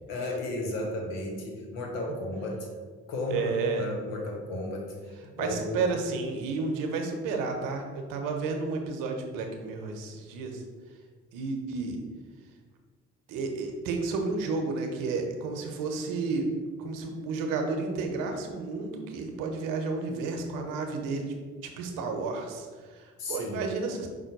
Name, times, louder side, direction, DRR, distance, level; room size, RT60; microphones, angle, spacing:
voice 1, 0.1-2.6 3.1-3.5 3.8-5.0 5.2-5.9 23.2-23.6, left 2 dB, 80° left, 1 dB, 0.9 m, -34 dB
voice 2, 3.3-3.9 5.4-10.6 11.3-12.0 13.3-16.5 16.8-21.3 21.6-24.1, right 4 dB, 75° right, 4 dB, 0.7 m, -31 dB
5.2 x 2.2 x 4.5 m, 1.5 s
hypercardioid pair, 50°, 33 cm